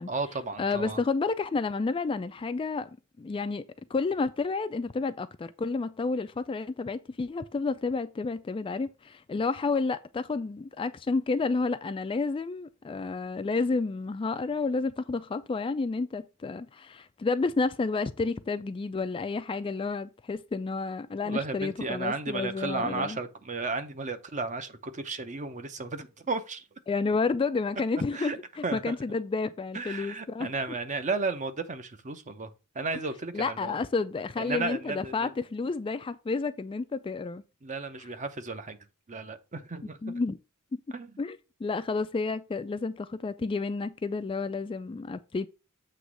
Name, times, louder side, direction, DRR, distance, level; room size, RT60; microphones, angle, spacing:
voice 1, 0.1-1.0 21.2-26.6 28.1-28.4 28.6-28.9 29.7-32.5 32.7-33.8 34.4-35.3 37.6-38.8 39.1-40.1 40.9-41.1, right 3 dB, 35° right, 0.7 m, -34 dB
voice 2, 0.6-2.9 3.2-3.6 3.9-23.2 26.9-30.5 33.3-37.4 40.0-40.4 41.2-45.5, left 4 dB, 25° left, 0.3 m, -30 dB
7.8 x 3.1 x 6.2 m
head